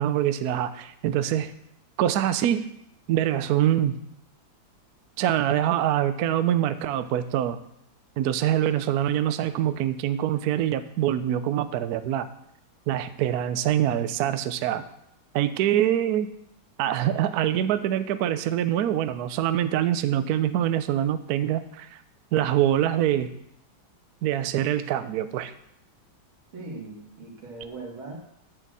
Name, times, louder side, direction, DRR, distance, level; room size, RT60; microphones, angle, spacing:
voice 1, 0.0-1.5 2.0-2.7 3.1-4.0 5.2-7.6 8.2-12.3 12.9-14.8 15.3-16.3 16.8-22.0 22.3-23.3 24.2-25.5, right 11 dB, 75° right, 11 dB, 0.9 m, -24 dB
voice 2, 26.5-28.2, right 3 dB, 90° right, -1 dB, 2.8 m, -39 dB
10.5 x 4.1 x 7.5 m, 0.75 s
omnidirectional pair, 2.1 m